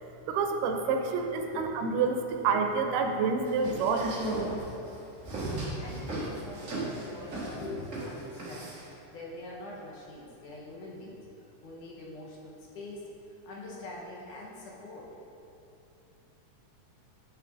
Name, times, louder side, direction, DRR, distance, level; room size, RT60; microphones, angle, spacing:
voice 1, 0.3-4.1, right 5 dB, 85° right, 4 dB, 2.2 m, -28 dB
sound 1, 3.5-8.9, right 2 dB, 55° right, 0.8 m, -36 dB
voice 2, 5.8-11.2 11.6-15.2, left 2 dB, 75° left, -4 dB, 2.5 m, -44 dB
9.6 x 6.4 x 2.6 m, 2.8 s
omnidirectional pair, 3.8 m